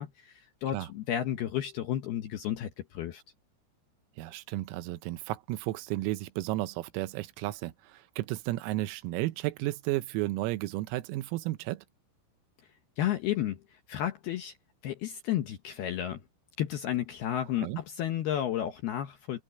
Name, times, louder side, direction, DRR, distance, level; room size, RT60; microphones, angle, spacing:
voice 1, 0.0-3.2 13.0-14.5 14.8-16.2 16.6-19.4, left 11 dB, 70° left, 2.4 m, -32 dB
voice 2, 4.2-11.9 17.6-17.8, right 17 dB, 90° right, 3.7 m, -33 dB
omnidirectional pair, 6.0 m